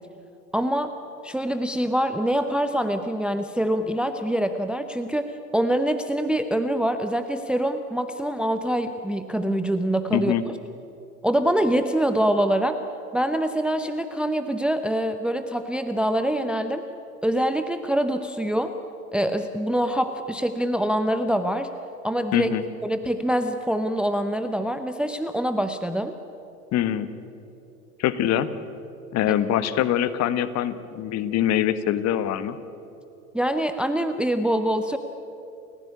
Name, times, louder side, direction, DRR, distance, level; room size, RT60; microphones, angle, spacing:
voice 1, 0.5-0.9 1.2-10.6 11.2-12.8 13.1-16.8 17.2-18.7 19.1-21.7 22.0-22.5 22.8-26.1 29.3-29.4 33.3-35.0, right 1 dB, ahead, 9 dB, 0.8 m, -25 dB
voice 2, 10.1-10.4 22.3-22.6 26.7-27.1 28.0-28.5 29.1-32.6, left 11 dB, 35° left, 13 dB, 1.4 m, -23 dB
30.0 x 15.5 x 9.8 m, 2.8 s
hypercardioid pair, 100°, 46 cm